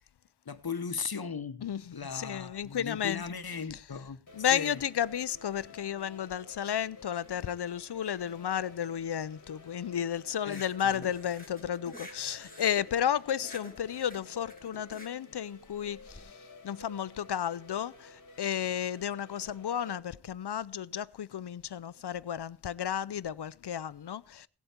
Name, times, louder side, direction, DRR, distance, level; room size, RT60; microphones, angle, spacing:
voice 1, 0.4-1.7 1.9-4.2 4.5-4.8 10.4-11.0, left 5 dB, 65° left, 1.0 m, -37 dB
voice 2, 2.1-3.2 4.3-16.3 16.6-24.5, left 9 dB, 80° left, 0.6 m, -33 dB
sound 1, 4.3-20.0, left 3 dB, 50° left, 1.6 m, -53 dB
sound 2, 10.4-16.2, left 1 dB, 20° left, 2.5 m, -50 dB
17.5 x 8.0 x 4.3 m
wide cardioid pair, 50°, 39 cm